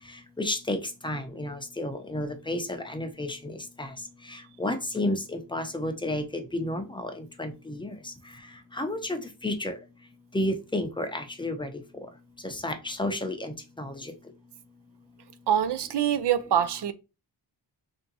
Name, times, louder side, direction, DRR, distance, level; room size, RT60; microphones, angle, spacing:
voice 1, 0.4-0.8 1.0-3.9 4.6-7.9 8.7-9.8 10.3-11.7 12.4-14.1, left 1 dB, 10° left, 0.6 m, -31 dB
voice 2, 15.5-16.9, right 9 dB, 65° right, 0.5 m, -24 dB
3.4 x 2.8 x 3.9 m
wide cardioid pair, 120°, 44 cm